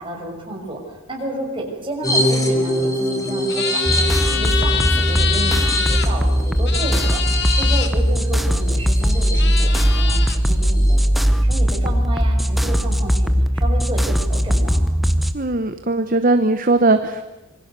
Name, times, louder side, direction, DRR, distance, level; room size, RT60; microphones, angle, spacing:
voice 1, 0.0-13.3 13.5-14.8, right 1 dB, 25° right, -1 dB, 6.3 m, -31 dB
sound 1, 2.0-9.7 10.1-10.2 10.5-11.0, equal, 15° left, 3.2 m, -25 dB
sound 2, 3.5-6.1 6.7-7.9 8.9-9.0 9.3-10.4, left 8 dB, 50° left, 1.7 m, -25 dB
sound 3, 3.9-15.3, equal, ahead, 1.0 m, -18 dB
voice 2, 15.3-17.2, right 2 dB, 40° right, 9 dB, 1.0 m, -18 dB
26.0 x 24.0 x 6.8 m, 1.1 s
head